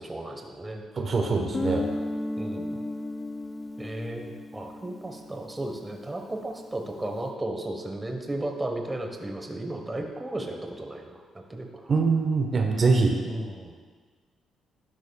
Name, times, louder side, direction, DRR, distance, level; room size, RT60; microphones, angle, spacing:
voice 1, 0.0-0.8 1.2-1.7 2.4-2.8 3.8-11.2 11.5-11.8 13.2-13.8, right 1 dB, 15° right, 3 dB, 1.1 m, -35 dB
voice 2, 1.0-1.8 11.9-13.2, right 4 dB, 45° right, 3 dB, 1.1 m, -23 dB
Guitar, 1.5-6.1, left 2 dB, 20° left, 0.4 m, -34 dB
11.5 x 11.0 x 2.3 m, 1.5 s
cardioid pair, 90°, 0 cm